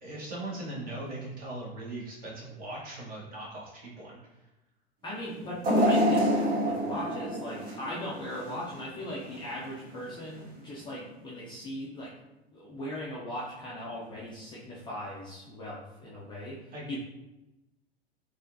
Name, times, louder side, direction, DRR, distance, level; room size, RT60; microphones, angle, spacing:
voice 1, 0.0-4.2 16.7-17.0, right 2 dB, 25° right, -5 dB, 1.3 m, -39 dB
voice 2, 0.8-1.2 5.0-12.1 12.5-16.6 16.9-17.0, left 1 dB, 15° left, -6 dB, 0.5 m, -39 dB
sound 1, 5.6-8.8 9.2-9.4 10.4-10.5, equal, 45° right, 1.3 m, -27 dB
4.1 x 2.5 x 2.7 m, 0.99 s
figure-of-eight pair, 90°, 32 cm